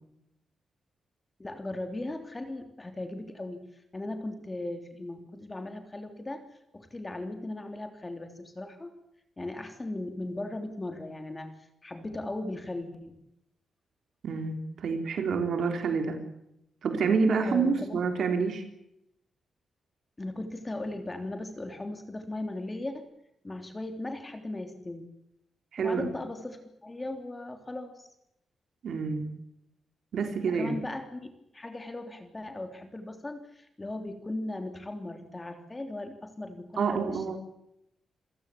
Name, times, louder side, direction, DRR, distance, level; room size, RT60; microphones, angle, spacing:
voice 1, 1.4-6.4 6.7-8.9 9.4-11.5 11.8-13.2 17.4-18.0 20.2-23.1 23.4-25.1 25.8-28.1 30.4-37.4, left 2 dB, 20° left, 6 dB, 3.3 m, -37 dB
voice 2, 14.2-16.2 16.8-18.6 25.7-26.1 28.8-29.3 30.1-30.8 36.8-37.4, right 5 dB, 70° right, 6 dB, 3.7 m, -28 dB
28.0 x 16.5 x 8.6 m, 0.79 s
wide cardioid pair, 130°, 0 cm